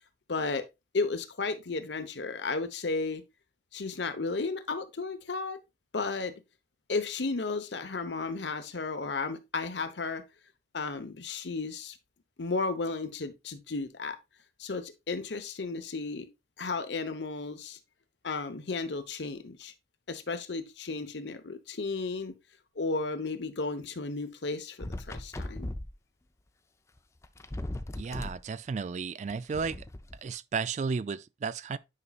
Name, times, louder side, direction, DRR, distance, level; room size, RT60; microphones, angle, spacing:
voice 1, 0.3-0.7 0.9-3.2 3.7-5.6 5.9-6.3 6.9-10.2 10.7-12.0 12.4-14.2 14.6-16.3 16.6-17.8 18.2-19.7 20.1-22.4 22.8-25.7, left 3 dB, 85° left, 0.9 m, -33 dB
sound 1, 24.8-25.9 27.0-27.1 27.2-28.4 29.3-30.2, left 1 dB, 15° left, 0.5 m, -38 dB
voice 2, 28.0-29.8 30.2-31.8, right 5 dB, 40° right, 0.3 m, -33 dB
9.7 x 5.4 x 2.4 m
head